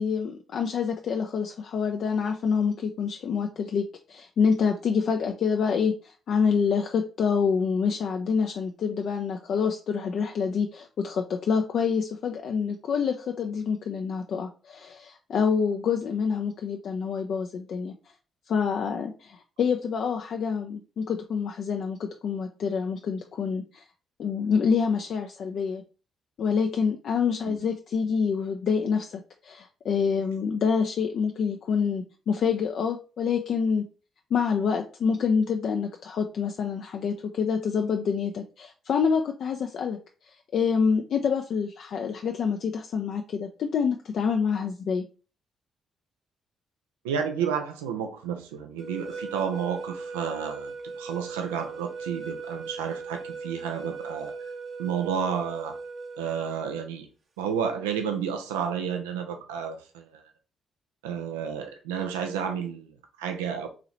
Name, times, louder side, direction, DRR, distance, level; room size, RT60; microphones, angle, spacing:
voice 1, 0.0-17.9 18.5-23.8 24.2-25.8 26.4-33.8 34.3-40.0 40.5-45.1, left 6 dB, 60° left, 0.3 m, -27 dB
voice 2, 47.0-54.3 54.8-55.8 56.2-57.1 57.4-60.2 61.0-63.7, right 7 dB, 85° right, 0.4 m, -31 dB
sound 1, 48.8-56.6, right 4 dB, 50° right, 0.9 m, -38 dB
3.9 x 2.8 x 3.0 m
hypercardioid pair, 45°, 0 cm